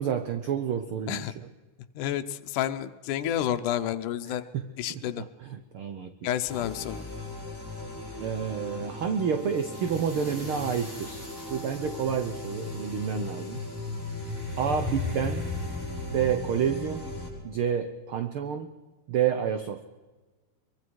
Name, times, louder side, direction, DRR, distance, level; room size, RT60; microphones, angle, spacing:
voice 1, 0.0-1.3 4.3-6.3 8.2-11.2 11.5-13.6 14.6-15.5 16.1-17.1 17.4-18.7 19.1-19.8, right 8 dB, 65° right, 8 dB, 1.4 m, -29 dB
voice 2, 2.0-4.4 4.8-5.2 6.2-7.0, left 11 dB, 85° left, 8 dB, 2.4 m, -30 dB
sound 1, 6.5-17.3, left 3 dB, 5° left, 6.9 m, -36 dB
24.0 x 23.0 x 4.7 m, 1.3 s
omnidirectional pair, 3.5 m